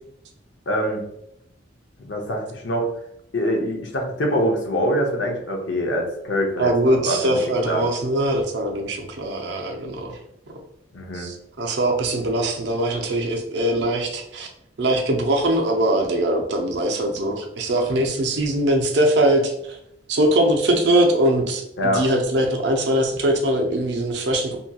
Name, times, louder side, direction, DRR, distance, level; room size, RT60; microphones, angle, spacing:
voice 1, 0.7-1.0 2.0-2.9 3.3-7.4 7.6-7.8 10.9-11.3 21.8-22.0, equal, 65° left, 1 dB, 0.6 m, -24 dB
voice 2, 6.6-10.2 11.1-14.5 14.8-19.8 20.1-21.6 21.9-24.6, right 1 dB, 60° right, 2 dB, 0.5 m, -21 dB
2.8 x 2.8 x 2.2 m, 0.77 s
head